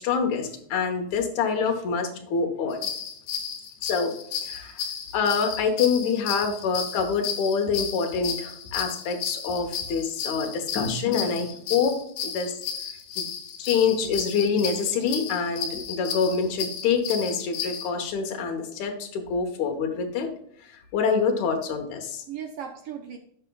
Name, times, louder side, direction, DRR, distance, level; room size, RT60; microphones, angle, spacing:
voice 1, 0.0-2.8 3.8-4.1 4.4-4.8 5.1-12.5 13.2-13.3 13.6-20.3 20.9-22.2, left 5 dB, 70° left, 4 dB, 2.5 m, -26 dB
sound 1, 2.7-17.9, left 7 dB, 85° left, 2.6 m, -33 dB
voice 2, 13.0-13.7 22.3-23.2, right 8 dB, 80° right, 3 dB, 1.3 m, -39 dB
14.5 x 5.2 x 2.3 m, 0.67 s
omnidirectional pair, 3.6 m